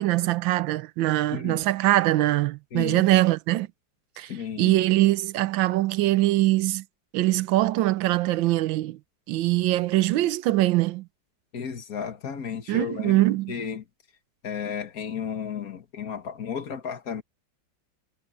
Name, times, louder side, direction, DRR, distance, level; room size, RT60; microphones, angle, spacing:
voice 1, 0.0-3.7 4.2-4.3 4.6-6.8 7.1-9.0 9.3-11.1 12.7-13.5, right 16 dB, 85° right, 1.4 m, -22 dB
voice 2, 2.7-3.1 4.3-4.8 11.5-13.8 14.4-17.2, left 7 dB, 50° left, 2.0 m, -33 dB
omnidirectional pair, 2.0 m